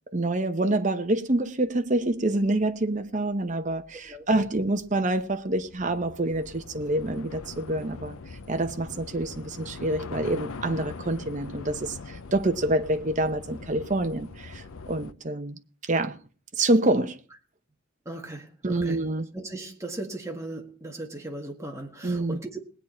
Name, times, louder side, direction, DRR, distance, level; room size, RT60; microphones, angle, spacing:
voice 1, 0.1-16.2 16.5-17.2 18.6-19.3 22.0-22.4, right 2 dB, 35° right, 0.9 m, -27 dB
Train / Subway metro underground, 1.8-1.9 2.1-15.1, left 4 dB, 80° left, 0.7 m, -42 dB
voice 2, 18.1-19.0 19.3-22.5, right 2 dB, 15° right, 1.7 m, -37 dB
19.5 x 8.9 x 4.4 m
head